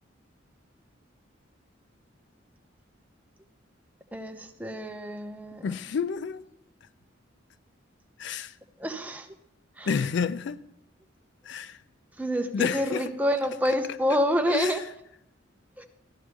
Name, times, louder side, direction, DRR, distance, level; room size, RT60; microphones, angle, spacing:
voice 1, 4.1-5.7 8.8-9.3 9.8-9.9 12.2-14.8 15.8-15.9, equal, 10° right, 0.8 m, -28 dB
voice 2, 5.6-6.4 8.2-8.6 9.9-10.6 11.4-11.8 12.5-13.1 13.6-13.8 14.1-14.2 14.5-14.8, left 6 dB, 65° left, 0.4 m, -30 dB
13.0 x 11.0 x 3.5 m
head